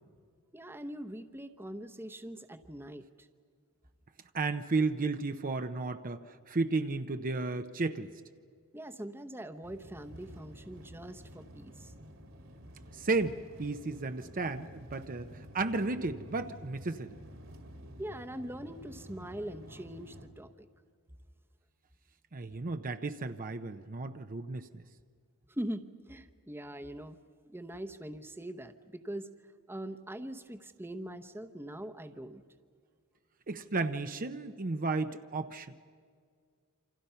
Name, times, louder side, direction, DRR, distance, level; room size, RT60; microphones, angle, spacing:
voice 1, 0.5-3.3 8.7-11.9 18.0-20.7 25.5-27.2 27.4-29.3 29.7-32.4, right 1 dB, 10° right, 7 dB, 0.9 m, -42 dB
voice 2, 4.3-8.1 12.9-17.2 22.3-24.8 33.5-35.7, right 3 dB, 40° right, 8 dB, 0.7 m, -33 dB
sound 1, 9.6-20.3, equal, 65° right, 2.4 m, -51 dB
28.5 x 26.5 x 5.7 m, 2.1 s
head